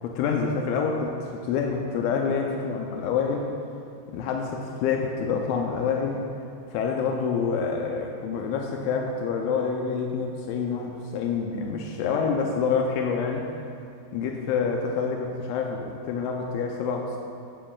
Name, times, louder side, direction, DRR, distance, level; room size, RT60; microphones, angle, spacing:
voice 1, 0.0-3.5 4.1-6.2 6.7-13.4 14.1-17.2, left 5 dB, 85° left, 1 dB, 3.0 m, -27 dB
17.0 x 7.5 x 2.3 m, 2.6 s
omnidirectional pair, 5.3 m